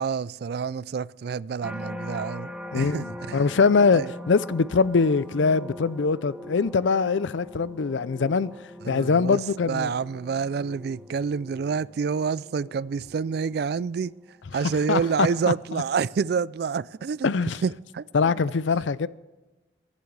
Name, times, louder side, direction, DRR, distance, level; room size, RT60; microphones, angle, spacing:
voice 1, 0.0-3.5 3.9-4.1 8.8-14.1 14.5-17.3 17.6-18.1, right 6 dB, 55° right, 0.3 m, -28 dB
sound 1, 1.6-16.8 17.3-17.8, left 1 dB, 5° right, 0.7 m, -42 dB
voice 2, 2.7-8.5 8.9-9.9 14.5-15.3 17.2-17.6 18.1-19.1, left 4 dB, 80° left, 0.5 m, -23 dB
21.5 x 11.5 x 3.3 m
head